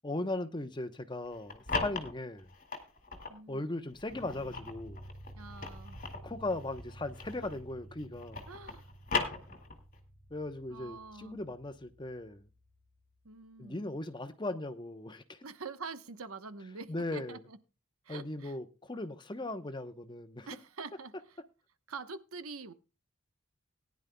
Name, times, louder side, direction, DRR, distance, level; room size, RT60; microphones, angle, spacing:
voice 1, 0.0-2.5 3.5-5.0 6.2-8.4 10.3-12.4 13.6-15.4 16.9-17.4 18.1-20.5, left 2 dB, 20° left, 0.9 m, -38 dB
sound 1, 1.3-3.4 4.0-7.7 8.0-10.0, left 4 dB, 40° left, 2.3 m, -38 dB
voice 2, 3.3-3.6 5.3-6.0 8.5-8.9 10.7-11.4 13.2-13.8 15.4-17.6 18.0-18.5 20.5-21.4 21.9-22.7, right 4 dB, 85° right, 1.1 m, -45 dB
sound 2, 4.1-13.2, right 1 dB, 50° right, 2.3 m, -52 dB
19.0 x 10.5 x 2.3 m
head